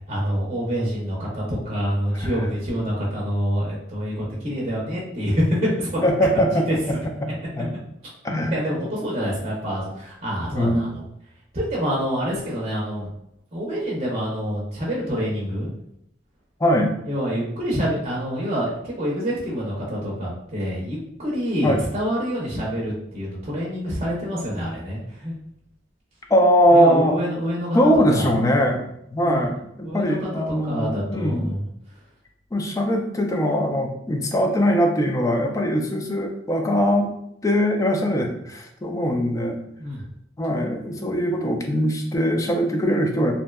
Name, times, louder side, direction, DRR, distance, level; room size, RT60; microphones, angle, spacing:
voice 1, 0.1-6.0 8.5-11.0 11.5-13.1 13.5-15.7 17.1-25.4 26.7-27.8 28.1-28.3 29.2-29.4 29.8-30.3 30.7-31.6 39.8-40.0, equal, 35° right, -5 dB, 0.6 m, -26 dB
voice 2, 6.0-7.0 7.2-7.3 7.6-7.7 8.2-8.6 10.5-10.8 16.6-16.9 21.6-21.8 26.3-27.2 27.7-31.5 32.5-37.1 37.4-39.6 40.4-43.3, equal, 20° left, 2 dB, 0.3 m, -21 dB
2.6 x 2.1 x 2.2 m, 0.76 s
head